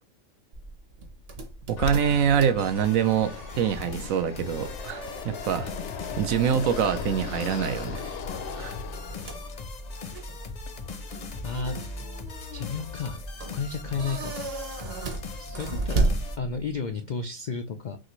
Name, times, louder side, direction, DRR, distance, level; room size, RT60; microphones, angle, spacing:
sound 1, 0.5-16.9, right 3 dB, 50° right, 1.1 m, -35 dB
voice 1, 1.7-5.7 6.2-8.1 8.6-8.8, right 8 dB, 75° right, 1.1 m, -25 dB
Fixed-wing aircraft airplane, 1.8-9.6, left 6 dB, 65° left, 0.9 m, -38 dB
sound 2, 2.8-16.4, left 3 dB, 45° left, 0.6 m, -39 dB
voice 2, 11.4-11.8 12.5-13.2 13.5-14.3 15.4-18.0, left 5 dB, 85° left, 0.4 m, -32 dB
6.2 x 2.5 x 3.0 m
omnidirectional pair, 1.4 m